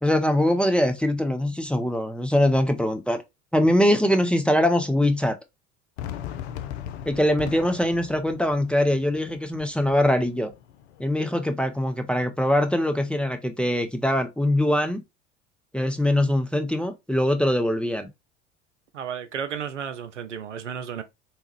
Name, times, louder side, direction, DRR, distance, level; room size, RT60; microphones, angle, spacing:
voice 1, 0.0-3.2 3.5-5.3 7.1-10.5 11.0-15.0 15.7-18.1, left 1 dB, 5° left, 0.5 m, -22 dB
Fireworks, 6.0-11.0, left 10 dB, 65° left, 0.6 m, -39 dB
voice 2, 18.9-21.0, right 8 dB, 85° right, 0.6 m, -33 dB
3.4 x 3.1 x 3.1 m
figure-of-eight pair, 70°, 35 cm